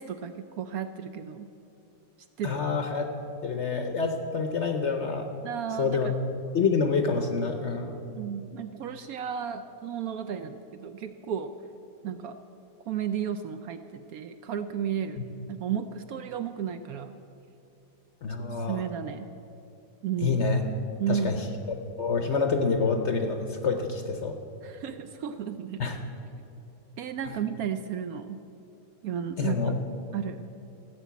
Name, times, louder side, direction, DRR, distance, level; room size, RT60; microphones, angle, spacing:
voice 1, 0.0-1.5 2.4-2.6 5.4-6.1 8.1-11.5 12.0-12.4 12.9-17.1 18.4-19.3 20.0-20.4 21.0-21.4 24.6-26.0 27.0-28.4 29.0-29.7 30.1-30.4, right 8 dB, 70° right, 9 dB, 0.9 m, -33 dB
voice 2, 2.4-3.1 3.4-5.3 5.8-6.2 6.5-8.0 18.2-18.8 20.2-20.6 21.1-24.4 25.8-26.0 27.3-27.4 29.4-29.7, left 4 dB, 55° left, 5 dB, 0.9 m, -27 dB
15.0 x 6.9 x 8.3 m, 2.9 s
omnidirectional pair, 1.8 m